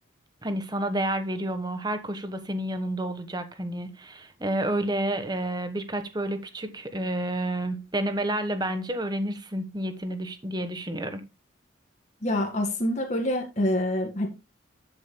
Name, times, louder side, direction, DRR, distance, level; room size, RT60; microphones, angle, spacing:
voice 1, 0.4-11.2, right 1 dB, 20° right, 1.2 m, -30 dB
voice 2, 12.2-14.3, left 1 dB, 35° left, 1.9 m, -26 dB
12.5 x 8.3 x 2.2 m
head